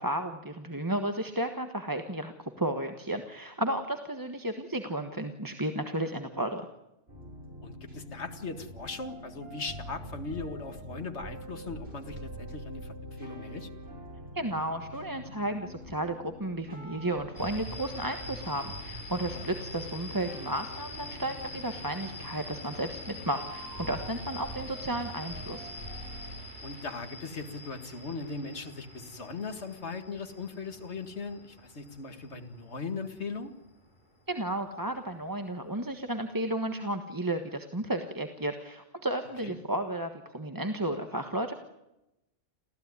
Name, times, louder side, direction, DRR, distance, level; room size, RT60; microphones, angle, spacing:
voice 1, 0.0-6.7 14.3-25.7 34.3-41.5, right 1 dB, 15° right, 6 dB, 1.4 m, -33 dB
sound 1, 7.1-26.4, equal, 60° right, 7.0 m, -44 dB
voice 2, 7.6-13.7 19.3-19.5 26.6-33.5 39.4-39.6, left 4 dB, 70° left, 7 dB, 2.3 m, -39 dB
sound 2, 17.3-34.0, left 2 dB, 40° left, 5.2 m, -45 dB
28.0 x 15.5 x 9.7 m, 0.93 s
omnidirectional pair, 1.2 m